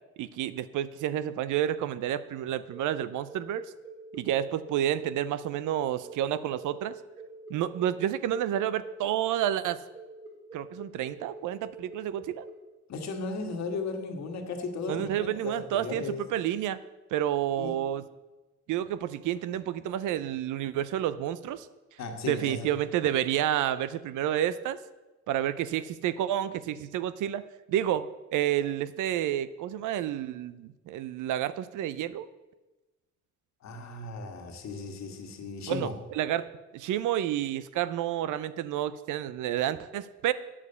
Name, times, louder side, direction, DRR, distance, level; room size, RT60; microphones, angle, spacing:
voice 1, 0.2-3.7 4.1-6.9 7.5-9.8 10.5-12.4 14.9-16.1 16.3-16.8 17.1-18.0 18.7-21.7 22.3-24.8 25.3-27.4 27.7-32.3 35.7-36.5 36.7-40.3, right 11 dB, 80° right, 15 dB, 0.6 m, -30 dB
sound 1, 2.7-12.5, right 3 dB, 45° right, 4.3 m, -47 dB
voice 2, 12.9-16.3 17.6-17.8 22.0-22.7 33.6-35.9, left 4 dB, 65° left, 4 dB, 1.7 m, -36 dB
8.5 x 7.2 x 6.7 m, 1.1 s
cardioid pair, 90°, 30 cm